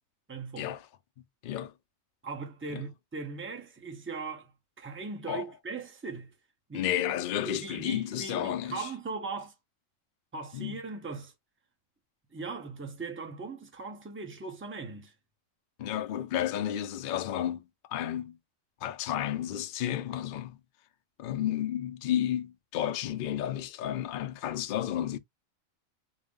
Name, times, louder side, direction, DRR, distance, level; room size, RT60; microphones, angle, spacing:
voice 1, 0.3-0.7 2.2-6.3 6.7-7.0 7.4-9.5 10.3-11.3 12.3-15.1, right 4 dB, 15° right, 0.6 m, -39 dB
voice 2, 1.4-1.7 2.7-2.8 5.3-5.4 6.7-8.9 10.5-10.8 15.8-17.6 17.9-18.4 18.8-20.6 21.2-25.2, left 11 dB, 60° left, 0.5 m, -32 dB
4.0 x 2.1 x 3.6 m
omnidirectional pair, 1.4 m